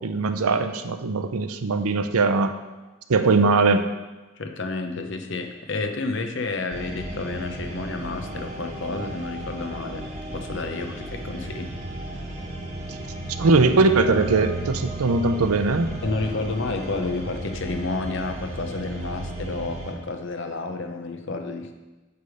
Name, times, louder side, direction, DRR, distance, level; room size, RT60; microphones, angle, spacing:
voice 1, 0.0-2.5 3.1-3.8 12.9-13.0 13.4-15.9, right 3 dB, 90° right, 9 dB, 0.6 m, -20 dB
voice 2, 4.4-11.8 16.0-21.7, left 3 dB, 55° left, 5 dB, 0.8 m, -30 dB
sound 1, 6.7-19.9, right 1 dB, 30° right, 1.3 m, -34 dB
9.4 x 3.5 x 6.4 m, 1.1 s
head